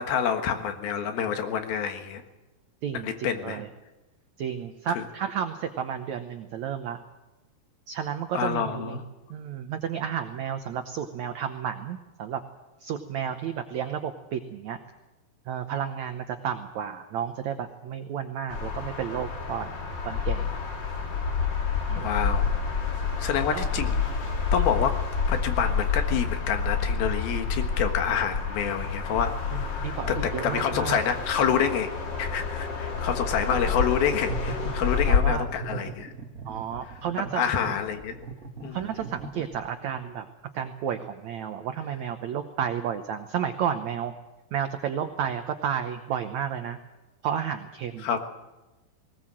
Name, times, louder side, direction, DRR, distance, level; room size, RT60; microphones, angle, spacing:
voice 1, 0.0-2.2 3.0-3.6 4.9-5.0 8.3-9.0 22.0-22.5 23.2-24.0 24.5-25.0 25.3-31.9 32.2-36.1 37.4-38.2 38.6-38.8 48.0-48.2, left 7 dB, 70° left, 6 dB, 3.2 m, -28 dB
voice 2, 2.8-3.7 4.4-7.0 7.9-9.0 9.3-12.4 12.8-14.8 15.5-19.7 20.0-20.5 21.9-22.1 23.5-23.6 29.5-31.0 35.1-35.5 36.4-37.4 38.7-40.3 40.5-44.1 44.5-46.8 47.2-48.1, right 8 dB, 90° right, 8 dB, 1.6 m, -32 dB
sound 1, 18.5-35.2, left 5 dB, 35° left, 2.0 m, -28 dB
sound 2, 34.0-39.9, right 4 dB, 45° right, 1.1 m, -39 dB
19.5 x 19.5 x 7.6 m, 1.1 s
omnidirectional pair, 4.6 m